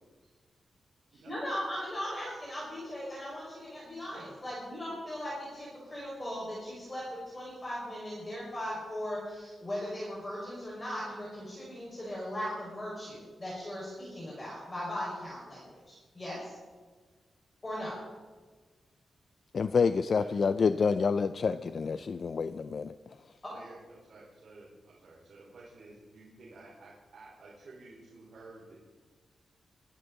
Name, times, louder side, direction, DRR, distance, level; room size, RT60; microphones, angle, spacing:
voice 1, 1.2-16.6 17.6-18.0 23.4-23.5, equal, 20° left, 5.3 m, -38 dB
voice 2, 19.5-22.9, left 5 dB, 50° left, 0.4 m, -28 dB
voice 3, 23.5-28.8, right 2 dB, 65° right, 4.5 m, -52 dB
23.0 x 11.5 x 4.0 m
wide cardioid pair, 125°, 0 cm